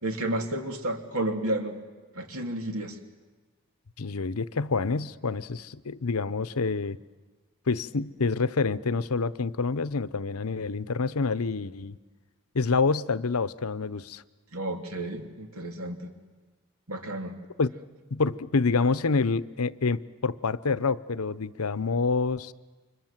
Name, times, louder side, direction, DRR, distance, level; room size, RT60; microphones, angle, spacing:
voice 1, 0.0-1.8 2.1-3.0 14.5-16.1 16.9-17.4, right 1 dB, 75° right, 5 dB, 2.9 m, -31 dB
voice 2, 4.0-7.0 7.7-12.0 12.5-14.2 17.6-17.7 18.1-22.5, left 4 dB, 75° left, 16 dB, 0.8 m, -27 dB
29.5 x 25.5 x 7.5 m, 1.4 s
head